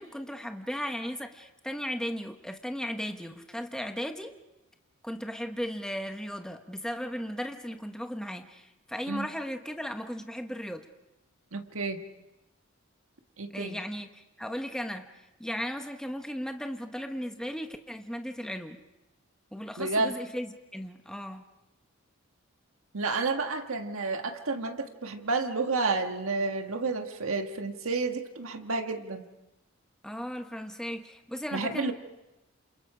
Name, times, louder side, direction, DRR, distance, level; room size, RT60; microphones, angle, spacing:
voice 1, 0.0-4.4 5.0-10.9 13.5-15.1 15.4-18.8 19.5-21.4 30.0-31.9, equal, 5° left, 5 dB, 1.1 m, -36 dB
voice 2, 11.5-12.0 13.4-13.8 19.8-20.2 22.9-29.2 31.5-31.9, right 3 dB, 80° right, 6 dB, 1.6 m, -30 dB
28.5 x 27.0 x 5.0 m, 0.99 s
head